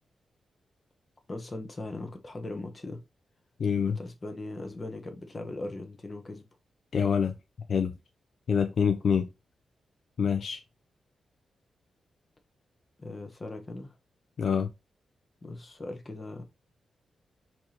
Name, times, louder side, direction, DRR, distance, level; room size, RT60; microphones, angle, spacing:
voice 1, 1.3-3.0 4.0-6.4 13.0-14.0 15.4-16.4, left 2 dB, 25° left, 0.8 m, -39 dB
voice 2, 3.6-4.0 6.9-7.3 7.7-8.0 8.5-9.3 10.2-10.6 14.4-14.7, left 6 dB, 60° left, 0.4 m, -26 dB
4.3 x 2.8 x 3.0 m
wide cardioid pair, 140°, 0 cm